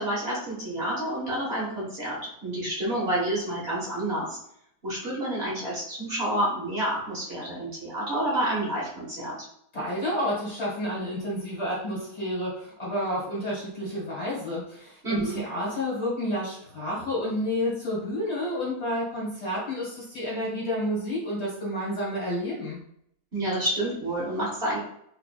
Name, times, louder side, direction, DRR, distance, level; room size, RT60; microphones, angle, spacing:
voice 1, 0.0-2.2 2.4-4.4 4.8-9.3 15.0-15.4 23.3-24.8, right 1 dB, 45° right, -6 dB, 1.4 m, -29 dB
voice 2, 9.7-22.8, left 1 dB, 45° left, -5 dB, 1.5 m, -30 dB
3.6 x 3.4 x 2.3 m, 0.71 s
omnidirectional pair, 1.6 m